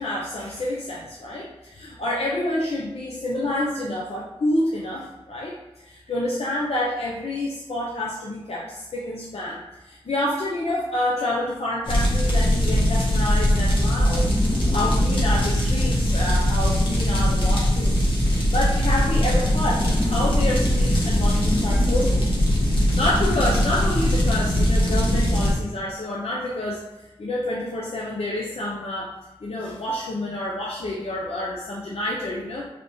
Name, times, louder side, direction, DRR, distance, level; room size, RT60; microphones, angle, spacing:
voice 1, 0.0-5.5 5.8-26.8 27.2-29.1 29.4-32.7, left 1 dB, 70° left, -4 dB, 0.7 m, -28 dB
sound 1, 11.8-25.5, equal, 55° left, 1.5 m, -21 dB
5.0 x 3.4 x 3.1 m, 1.1 s
wide cardioid pair, 70°, 10 cm